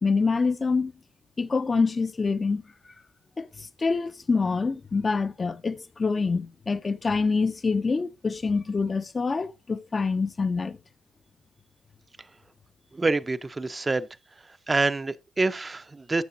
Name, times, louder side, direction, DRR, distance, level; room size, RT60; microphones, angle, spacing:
voice 1, 0.0-0.9 1.4-2.6 3.4-10.8, left 4 dB, 30° left, 0.5 m, -26 dB
voice 2, 12.9-14.1 14.7-16.2, right 3 dB, 25° right, 0.5 m, -26 dB
12.5 x 7.1 x 2.6 m
cardioid pair, 90°, 0 cm